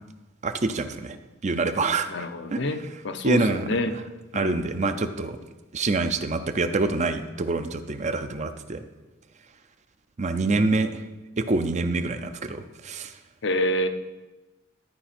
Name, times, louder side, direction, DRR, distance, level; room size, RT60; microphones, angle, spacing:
voice 1, 0.4-1.2 1.4-2.1 2.5-2.6 3.2-3.7 4.3-5.4 5.7-8.8 10.2-11.0 11.4-13.2, right 3 dB, 35° right, 9 dB, 0.5 m, -26 dB
voice 2, 2.1-4.0 4.3-4.6 13.4-13.9, left 1 dB, 65° left, 9 dB, 0.7 m, -27 dB
13.0 x 5.0 x 4.3 m, 1.1 s
head